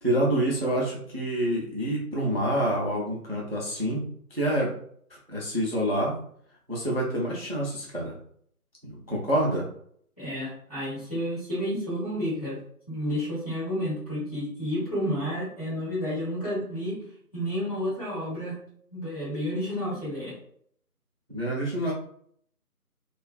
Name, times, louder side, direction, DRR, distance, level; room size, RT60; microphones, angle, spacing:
voice 1, 0.0-4.0 4.3-4.7 5.3-6.1 6.7-8.1 8.8-9.7 21.3-21.9, right 1 dB, 45° right, -3 dB, 0.4 m, -27 dB
voice 2, 10.2-12.6 12.9-17.0 17.3-18.6 18.9-20.4, equal, 25° left, -10 dB, 1.1 m, -31 dB
2.4 x 2.3 x 2.3 m, 0.63 s
figure-of-eight pair, 165°, 46 cm